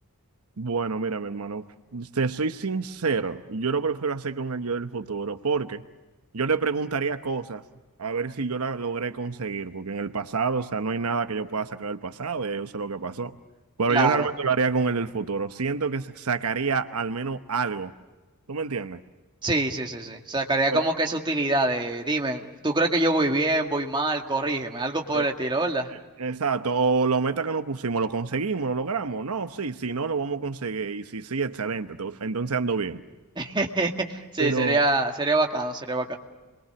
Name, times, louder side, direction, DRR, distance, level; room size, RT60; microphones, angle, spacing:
voice 1, 0.6-1.6 1.9-5.8 6.3-7.6 8.0-13.4 13.8-17.9 18.5-19.0 20.7-20.8 25.1-25.3 25.9-33.0 34.4-34.8, right 4 dB, 80° right, 9 dB, 1.0 m, -28 dB
voice 2, 13.9-14.3 19.4-25.9 33.4-36.2, right 2 dB, 20° right, 2 dB, 2.1 m, -25 dB
29.5 x 23.0 x 7.0 m, 1.2 s
head